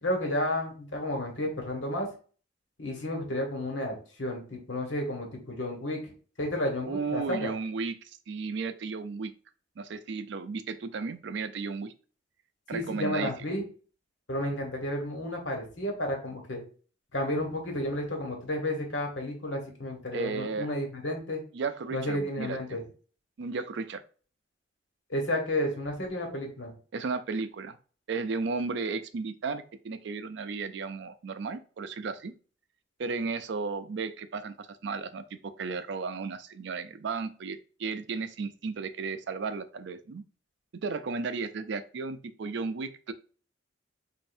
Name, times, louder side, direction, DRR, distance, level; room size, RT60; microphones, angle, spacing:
voice 1, 0.0-2.1 2.8-6.0 6.4-7.5 12.7-13.6 14.3-16.6 17.1-21.4 21.9-22.8 25.1-26.7, left 1 dB, 80° left, 2 dB, 1.4 m, -32 dB
voice 2, 6.8-9.3 9.8-11.9 12.7-13.3 20.1-20.7 21.5-22.8 23.4-24.0 26.9-27.8 28.1-32.3 33.0-40.2 40.7-43.1, right 4 dB, 65° right, 11 dB, 0.4 m, -34 dB
5.4 x 2.6 x 2.6 m, 0.40 s
head